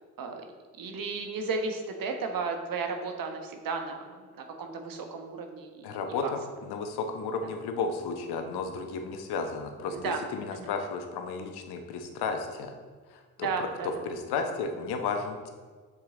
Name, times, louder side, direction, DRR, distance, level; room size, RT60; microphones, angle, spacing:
voice 1, 0.8-4.0 4.3-6.3 9.9-10.2 10.5-10.7 13.4-13.9, right 4 dB, 45° right, 4 dB, 1.4 m, -34 dB
voice 2, 5.8-12.7 13.1-15.5, left 4 dB, 55° left, 5 dB, 1.2 m, -33 dB
7.9 x 7.4 x 3.9 m, 1.5 s
hypercardioid pair, 55°, 45 cm